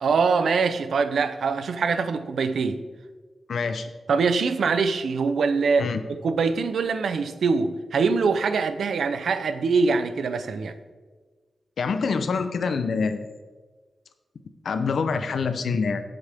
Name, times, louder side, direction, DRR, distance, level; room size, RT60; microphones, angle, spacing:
voice 1, 0.0-2.8 4.1-10.8, right 4 dB, 85° right, 11 dB, 0.8 m, -23 dB
voice 2, 3.5-3.9 5.8-6.0 11.8-13.3 14.6-16.0, left 5 dB, 70° left, 9 dB, 0.8 m, -26 dB
17.5 x 7.9 x 3.7 m, 1.4 s
wide cardioid pair, 170°, 0 cm